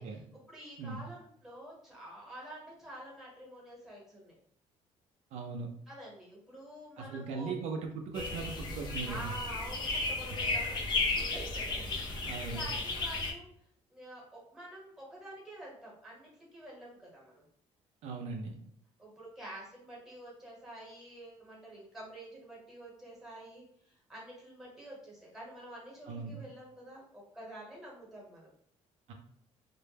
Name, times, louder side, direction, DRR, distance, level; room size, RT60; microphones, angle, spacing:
voice 1, 0.3-4.3 5.9-7.5 9.0-13.5 13.9-17.4 19.0-28.5, right 1 dB, 5° right, -4 dB, 0.9 m, -48 dB
voice 2, 5.3-5.7 7.0-9.3 12.2-12.7 18.0-18.5 26.1-26.4 29.1-29.2, right 4 dB, 70° right, 3 dB, 0.4 m, -39 dB
sound 1, 8.1-13.3, left 3 dB, 40° left, 0.5 m, -34 dB
2.1 x 2.0 x 3.2 m, 0.67 s
cardioid pair, 155°, 12 cm